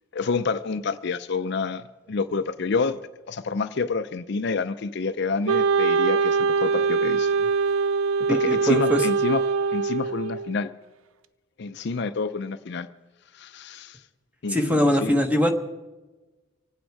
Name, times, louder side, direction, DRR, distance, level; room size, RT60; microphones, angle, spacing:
voice 1, 0.1-1.8 2.1-3.0 3.3-7.5 8.3-9.4 9.7-10.7 11.6-12.9 13.3-14.0 14.4-15.1, left 4 dB, 55° left, 11 dB, 0.5 m, -28 dB
Wind instrument woodwind instrument, 5.5-10.6, right 5 dB, 80° right, 0.5 m, -23 dB
voice 2, 8.3-9.1 14.5-15.5, equal, 5° right, 5 dB, 1.1 m, -22 dB
26.0 x 8.9 x 4.7 m, 1.2 s
head